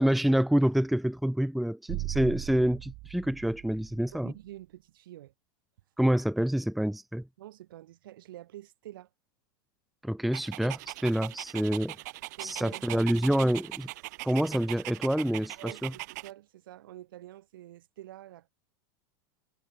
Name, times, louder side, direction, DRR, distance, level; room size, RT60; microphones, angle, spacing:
voice 1, 0.0-4.3 6.0-7.3 10.0-12.0 12.4-13.9 14.2-15.9, equal, ahead, 0.9 m, -27 dB
sound 1, 1.9-4.3, right 24 dB, 35° right, 4.2 m, -39 dB
voice 2, 4.2-5.3 6.1-6.2 7.4-9.1 12.4-13.0 15.6-18.5, right 14 dB, 75° right, 7.1 m, -47 dB
Dog, 10.3-16.3, right 21 dB, 50° right, 4.8 m, -41 dB
supercardioid pair, 170°, 12 cm